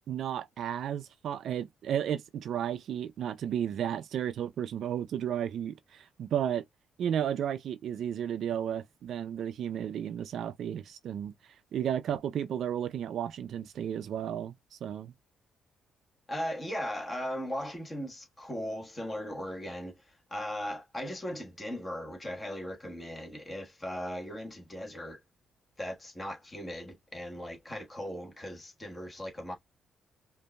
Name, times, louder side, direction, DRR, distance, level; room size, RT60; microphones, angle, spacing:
voice 1, 0.1-6.6 7.0-11.3 11.7-14.5 14.8-15.1, right 9 dB, 70° right, 0.4 m, -33 dB
voice 2, 16.3-25.2 25.8-29.5, equal, 20° left, 1.4 m, -38 dB
5.1 x 2.6 x 2.2 m
cardioid pair, 90°, 0 cm